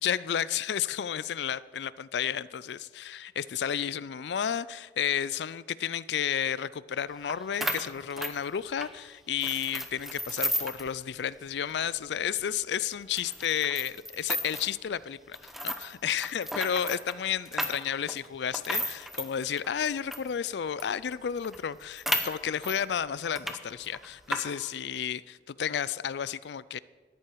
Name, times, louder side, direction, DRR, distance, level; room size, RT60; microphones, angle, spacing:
voice 1, 0.0-26.8, left 8 dB, 70° left, 0.4 m, -32 dB
sound 1, 7.3-7.4 7.6-8.9 9.4-10.9 11.2-11.3 11.7-11.8 12.4-12.5 13.2-14.7 15.3-20.3 20.8-20.9 21.1-21.2 21.4-22.8 23.2-23.6 23.8-24.4, equal, ahead, 0.7 m, -33 dB
13.5 x 10.5 x 4.6 m
head